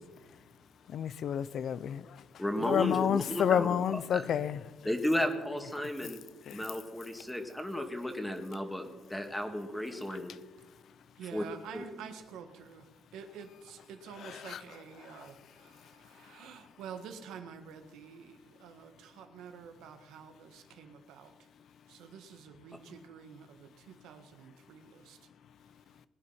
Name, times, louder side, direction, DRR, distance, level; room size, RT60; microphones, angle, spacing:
voice 1, 0.9-2.1 2.6-4.6 6.5-6.6 14.2-14.6, left 9 dB, 65° left, 0.6 m, -30 dB
voice 2, 2.4-3.8 4.1-4.2 4.8-6.2 6.5-10.4 11.3-11.4 11.7-11.8, left 1 dB, 5° left, 1.9 m, -34 dB
voice 3, 11.2-21.3 21.9-25.3, right 7 dB, 90° right, 1.6 m, -49 dB
20.5 x 9.8 x 5.7 m
cardioid pair, 90°, 0 cm